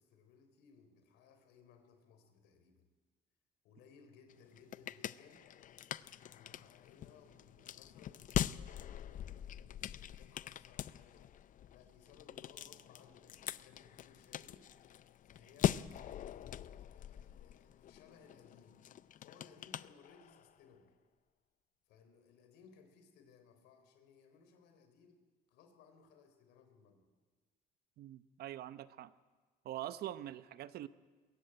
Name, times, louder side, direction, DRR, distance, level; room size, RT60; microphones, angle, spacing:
voice 1, 0.0-2.9 3.6-5.5 5.9-11.3 11.7-14.7 15.2-18.8 19.2-21.0 21.9-27.1, left 6 dB, 85° left, 7 dB, 3.7 m, -63 dB
sound 1, 4.3-20.5, left 11 dB, 50° left, 0.6 m, -42 dB
voice 2, 28.0-29.1 29.6-30.9, right 13 dB, 70° right, 14 dB, 0.9 m, -44 dB
21.5 x 16.5 x 9.0 m, 1.4 s
cardioid pair, 110°, 17 cm